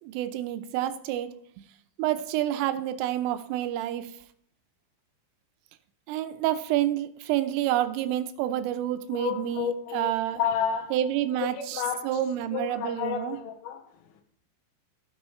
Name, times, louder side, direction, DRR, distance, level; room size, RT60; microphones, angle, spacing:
voice 1, 0.0-1.4 2.0-4.2 6.1-10.4 10.9-13.4, right 12 dB, 85° right, 3.3 m, -28 dB
voice 2, 9.1-11.0 11.4-12.2 12.5-14.2, left 8 dB, 80° left, 3.5 m, -31 dB
18.5 x 6.3 x 3.1 m
omnidirectional pair, 5.8 m